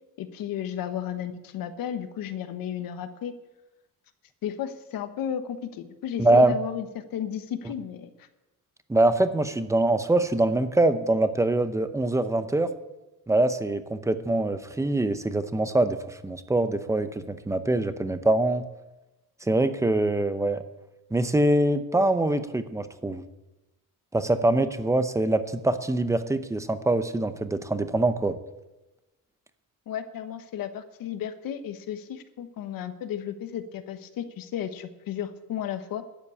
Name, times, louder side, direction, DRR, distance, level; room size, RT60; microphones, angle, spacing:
voice 1, 0.2-3.3 4.4-8.1 29.9-36.0, left 9 dB, 90° left, 10 dB, 1.2 m, -34 dB
voice 2, 6.2-6.5 8.9-12.7 13.3-18.6 19.4-20.6 21.1-23.2 24.1-28.4, right 2 dB, 10° right, 11 dB, 0.7 m, -24 dB
12.0 x 8.3 x 8.5 m, 1.0 s
cardioid pair, 160°, 33 cm